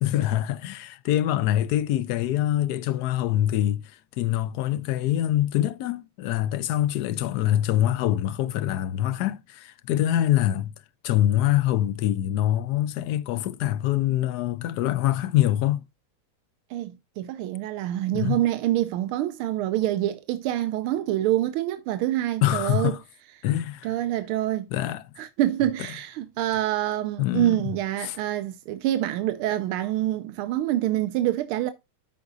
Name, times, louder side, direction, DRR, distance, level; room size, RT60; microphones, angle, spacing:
voice 1, 0.0-10.7 11.0-15.8 18.1-18.4 22.4-23.0 23.4-24.0 24.7-25.0 27.2-27.7 28.0-28.2, left 13 dB, 80° left, 0.9 m, -24 dB
voice 2, 16.7-23.0 23.8-24.7 25.2-31.7, right 13 dB, 90° right, 1.5 m, -26 dB
13.0 x 4.8 x 2.6 m
omnidirectional pair, 2.3 m